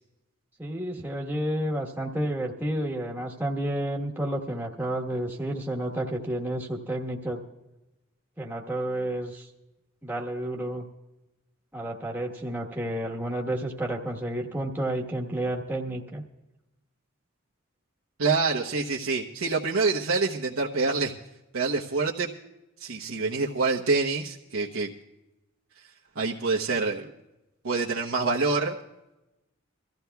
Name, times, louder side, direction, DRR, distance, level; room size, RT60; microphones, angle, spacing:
voice 1, 0.6-7.4 8.4-9.5 10.0-10.8 11.7-16.2, right 1 dB, 10° right, -1 dB, 1.3 m, -30 dB
voice 2, 18.2-21.1 21.5-22.3 22.8-24.9 26.2-27.1 27.6-28.7, right 4 dB, 80° right, -3 dB, 1.0 m, -26 dB
24.0 x 14.5 x 2.3 m, 0.96 s
head